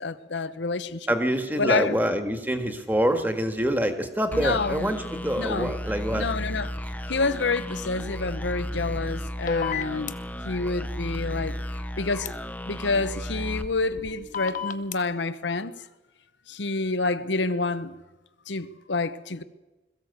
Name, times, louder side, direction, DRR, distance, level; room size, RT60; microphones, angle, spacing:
voice 1, 0.0-1.1 1.6-2.0 4.3-4.9 5.4-5.7 6.1-6.7 7.1-10.2 10.4-12.3 12.7-15.7 16.5-17.9 18.5-19.4, left 3 dB, 85° left, 1.0 m, -28 dB
voice 2, 1.1-6.2, equal, 10° right, 1.7 m, -26 dB
sound 1, 4.3-14.6, equal, 10° left, 0.8 m, -34 dB
sound 2, 9.5-10.1 12.3-12.4 14.3-15.0, left 6 dB, 45° left, 0.9 m, -29 dB
21.5 x 15.0 x 8.2 m
head